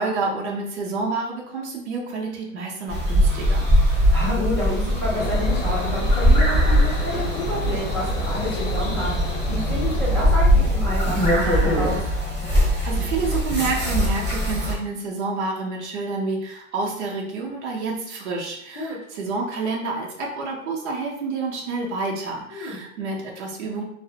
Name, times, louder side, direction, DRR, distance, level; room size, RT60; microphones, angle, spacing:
voice 1, 0.0-3.7 12.7-23.8, right 3 dB, 55° right, -2 dB, 0.7 m, -29 dB
sound 1, 2.9-14.7, equal, 15° right, 0.7 m, -21 dB
voice 2, 3.8-12.1 18.8-19.0 22.5-22.8, left 1 dB, 20° left, -11 dB, 0.4 m, -29 dB
sound 2, 5.2-10.3, left 4 dB, 70° left, 0.6 m, -32 dB
2.4 x 2.0 x 2.7 m, 0.74 s
hypercardioid pair, 165°, 40 cm